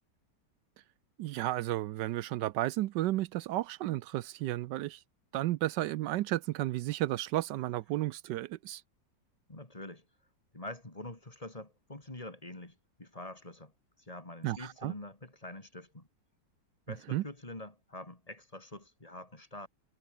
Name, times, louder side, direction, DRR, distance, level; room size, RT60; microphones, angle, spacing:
voice 1, 1.2-5.0 5.3-8.8 14.4-14.9 17.1-17.2, right 15 dB, 80° right, 1.2 m, -33 dB
voice 2, 9.5-10.0 10.5-13.7 14.0-16.1 16.9-19.7, left 1 dB, 20° left, 2.7 m, -45 dB
omnidirectional pair, 1.9 m